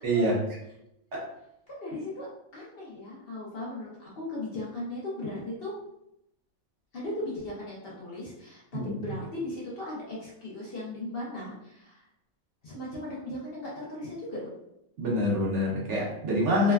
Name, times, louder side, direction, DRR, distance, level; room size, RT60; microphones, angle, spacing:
voice 1, 0.0-0.4 1.1-1.3 8.7-8.9 15.0-16.7, equal, 65° right, -3 dB, 0.9 m, -26 dB
voice 2, 1.7-2.3 2.5-5.7 6.9-8.6 8.9-12.0 12.6-14.5, left 1 dB, 55° left, -5 dB, 0.7 m, -37 dB
3.1 x 2.1 x 2.2 m, 0.81 s
omnidirectional pair, 1.4 m